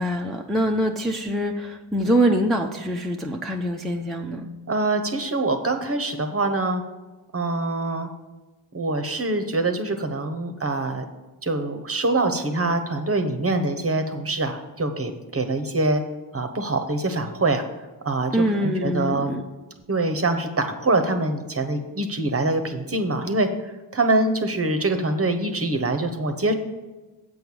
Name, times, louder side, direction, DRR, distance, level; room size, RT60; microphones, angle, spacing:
voice 1, 0.0-4.4 18.3-19.4, right 1 dB, ahead, 0 dB, 0.7 m, -24 dB
voice 2, 4.7-6.8 7.3-8.1 8.7-11.0 11.4-16.0 16.3-17.6 18.0-19.3 19.9-23.5 23.9-26.5, right 2 dB, 30° right, 7 dB, 1.0 m, -24 dB
7.9 x 4.6 x 7.0 m, 1.2 s
cardioid pair, 60°, 49 cm